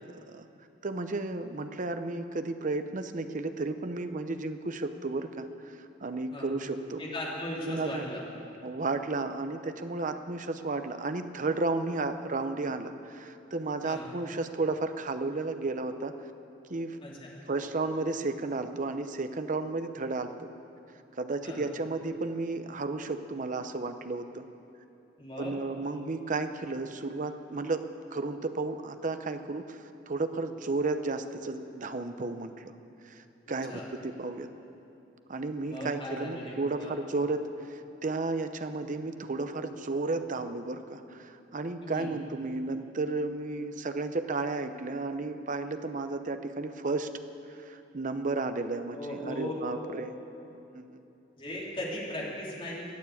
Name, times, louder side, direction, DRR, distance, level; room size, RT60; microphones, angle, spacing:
voice 1, 0.0-0.5 0.8-7.0 7.6-8.1 8.6-16.1 16.7-17.0 17.5-20.5 21.2-24.5 25.4-32.7 33.0-34.5 35.3-47.1 47.5-50.1 50.7-51.0, right 3 dB, 45° right, 9 dB, 0.7 m, -33 dB
voice 2, 7.0-8.2 13.8-14.0 17.0-17.3 21.4-21.6 25.2-25.5 33.5-33.8 35.4-36.9 41.8-42.1 48.9-50.0 51.4-52.9, left 1 dB, 30° left, -4 dB, 3.1 m, -38 dB
22.0 x 7.3 x 8.5 m, 2.8 s
head